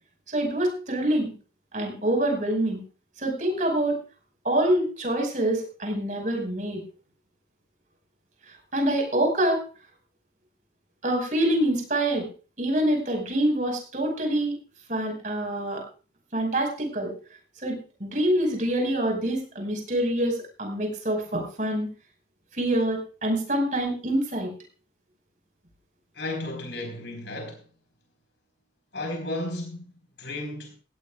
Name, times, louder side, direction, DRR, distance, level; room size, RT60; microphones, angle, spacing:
voice 1, 0.3-1.3 1.7-2.8 3.2-4.0 4.4-6.8 8.7-9.6 11.0-12.3 12.6-14.6 14.9-15.8 16.3-17.1 17.6-21.9 22.5-24.5, right 1 dB, 45° right, 5.4 m, -26 dB
voice 2, 26.1-27.7 28.9-30.7, left 1 dB, 85° left, 4.5 m, -34 dB
18.0 x 16.5 x 2.4 m
head